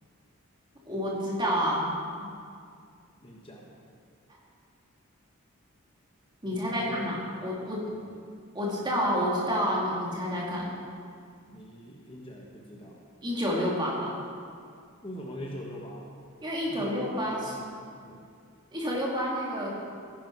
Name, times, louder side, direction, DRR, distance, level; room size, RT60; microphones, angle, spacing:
voice 1, 0.9-1.9 6.4-7.9 8.5-10.7 13.2-14.1 16.4-17.5 18.7-19.7, equal, 20° right, -4 dB, 2.6 m, -29 dB
voice 2, 3.2-3.7 6.4-8.2 11.5-13.0 15.0-16.1 16.7-18.3, equal, 25° left, -2 dB, 1.2 m, -44 dB
15.5 x 10.5 x 4.7 m, 2.3 s
head